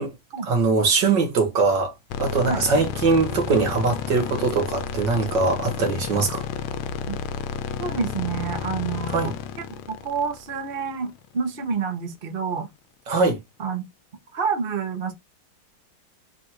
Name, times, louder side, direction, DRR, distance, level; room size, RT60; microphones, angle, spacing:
voice 1, 0.4-1.9 2.2-6.5 9.1-9.3 13.1-13.4, right 4 dB, 60° right, 1.9 m, -22 dB
sound 1, 2.1-11.3, left 7 dB, 90° left, 1.4 m, -31 dB
voice 2, 7.8-9.3 9.9-12.7 13.6-13.8 14.3-15.1, right 6 dB, 40° right, 0.9 m, -28 dB
4.1 x 2.6 x 4.3 m
omnidirectional pair, 2.2 m